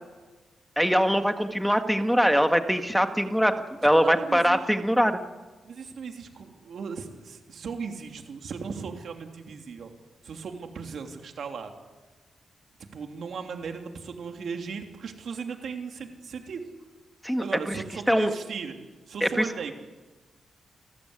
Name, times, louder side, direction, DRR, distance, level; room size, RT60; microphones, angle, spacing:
voice 1, 0.8-3.5 3.8-5.2 17.2-17.4 18.1-18.3 19.2-19.4, equal, ahead, 7 dB, 1.7 m, -22 dB
voice 2, 3.9-4.6 4.9-5.1 5.7-9.9 10.2-11.7 12.9-16.6 17.4-18.8 19.1-19.7, right 5 dB, 65° right, 4 dB, 3.1 m, -37 dB
28.5 x 14.5 x 9.9 m, 1.3 s
wide cardioid pair, 115°, 0 cm